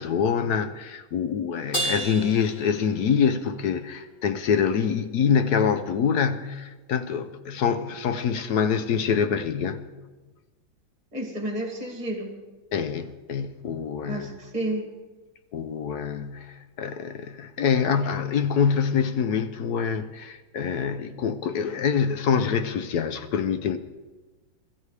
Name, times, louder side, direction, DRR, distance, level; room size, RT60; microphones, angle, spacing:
voice 1, 0.0-9.9 12.7-14.3 15.5-23.8, left 7 dB, 65° left, 1.0 m, -25 dB
Crash cymbal, 1.7-3.5, right 1 dB, 30° left, 4.8 m, -31 dB
voice 2, 11.1-12.3 14.0-14.9, right 1 dB, 20° right, 2.3 m, -31 dB
21.5 x 14.0 x 3.3 m
omnidirectional pair, 2.2 m